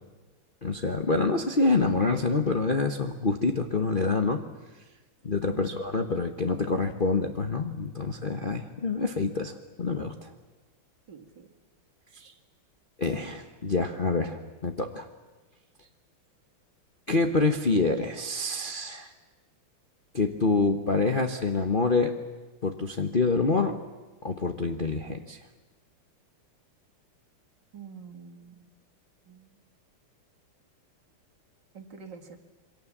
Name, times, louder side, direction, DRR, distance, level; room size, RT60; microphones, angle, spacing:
voice 1, 0.6-4.4 5.2-10.3 12.1-12.3 13.0-15.1 17.1-19.1 20.1-22.1 22.6-23.8 24.2-25.4, left 3 dB, 35° left, 4 dB, 0.9 m, -26 dB
voice 2, 5.5-5.8 11.1-11.5 27.7-28.7 29.3-29.5 31.7-32.4, right 6 dB, 55° right, 5 dB, 2.5 m, -46 dB
27.0 x 23.5 x 7.4 m, 1.2 s
omnidirectional pair, 2.4 m